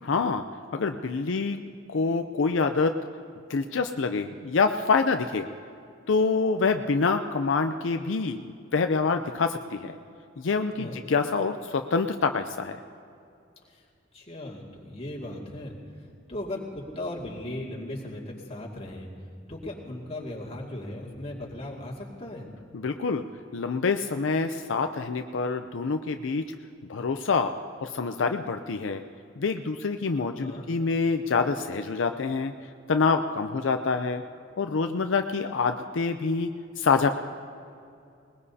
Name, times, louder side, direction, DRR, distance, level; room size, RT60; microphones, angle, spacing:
voice 1, 0.0-0.4 0.7-1.6 1.9-2.9 3.5-5.5 6.1-8.5 8.7-9.9 10.4-12.8 22.7-23.2 23.5-26.4 26.9-27.5 27.8-29.0 29.4-32.5 32.9-34.2 34.6-36.5 36.8-37.1, left 4 dB, 80° left, 6 dB, 0.5 m, -26 dB
voice 2, 14.1-19.1 19.5-22.5 30.4-30.7, left 1 dB, 35° left, -3 dB, 2.2 m, -37 dB
21.0 x 20.0 x 2.8 m, 2.4 s
head